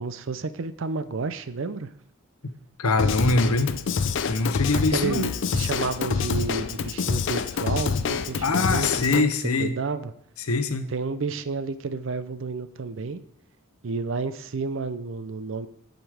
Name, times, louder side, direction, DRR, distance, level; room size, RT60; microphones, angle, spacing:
voice 1, 0.0-1.9 3.5-3.6 4.7-8.9 9.1-9.3 9.6-10.1 10.9-13.2 13.8-15.7, right 4 dB, 55° right, 13 dB, 0.5 m, -31 dB
voice 2, 2.8-3.8 4.3-5.3 8.4-9.7 10.5-10.9, left 3 dB, 80° left, 10 dB, 0.8 m, -23 dB
Drum kit / Drum, 3.0-9.2, left 5 dB, 55° left, 0.4 m, -27 dB
11.0 x 5.1 x 5.0 m, 0.72 s
head